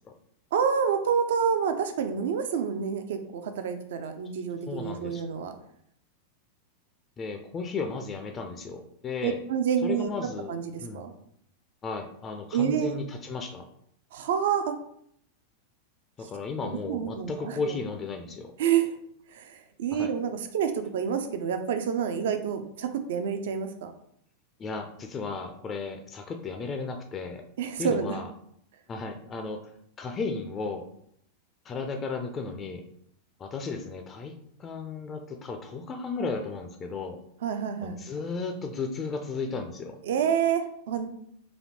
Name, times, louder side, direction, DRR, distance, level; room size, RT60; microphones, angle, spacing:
voice 1, 0.5-5.5 9.2-10.1 10.5-11.1 12.5-12.9 14.1-14.8 16.9-17.6 18.6-18.9 19.3-23.9 27.6-28.2 37.4-38.0 40.0-41.1, right 7 dB, 55° right, 8 dB, 0.4 m, -28 dB
voice 2, 4.7-5.2 7.2-9.4 9.8-11.1 11.8-13.7 16.2-18.5 19.9-20.1 24.6-27.4 27.8-28.3 28.9-29.7 30.0-30.9 31.6-32.8 33.4-37.2 37.8-40.0, left 4 dB, 25° left, 5 dB, 0.4 m, -34 dB
4.1 x 2.7 x 3.0 m, 0.70 s
figure-of-eight pair, 90°, 0 cm